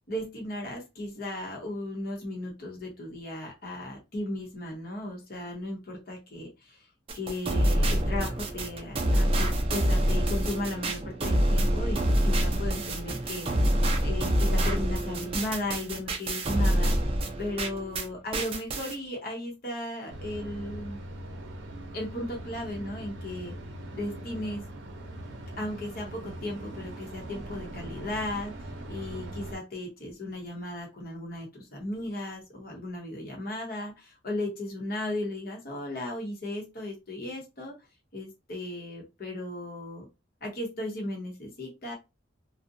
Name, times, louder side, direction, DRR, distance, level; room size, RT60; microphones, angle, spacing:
voice 1, 0.1-6.8 7.1-13.5 14.0-17.0 17.4-21.0 21.9-23.6 23.9-24.6 25.6-37.8 38.1-40.1 40.4-41.9, left 1 dB, 50° left, 0 dB, 0.8 m, -36 dB
sound 1, 7.1-18.1 18.3-18.9, right 1 dB, 30° right, 0.4 m, -26 dB
sound 2, 20.1-29.6, right 1 dB, 80° right, 0.6 m, -41 dB
2.6 x 2.1 x 2.5 m, 0.25 s
head